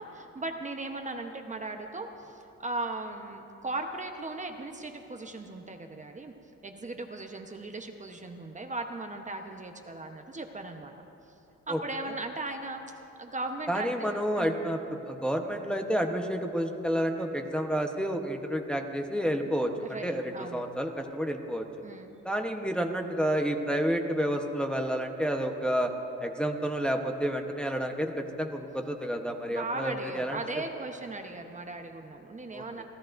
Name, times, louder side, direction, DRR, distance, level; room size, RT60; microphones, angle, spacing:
voice 1, 0.0-6.3 6.6-10.9 11.7-14.6 19.8-20.6 21.8-22.1 29.5-32.8, right 2 dB, 25° right, 4 dB, 1.0 m, -38 dB
voice 2, 13.7-14.8 15.0-21.6 22.2-25.9 26.2-30.4 32.5-32.8, equal, 5° left, 3 dB, 1.0 m, -30 dB
29.0 x 13.5 x 2.6 m, 2.9 s
cardioid pair, 90°, 30 cm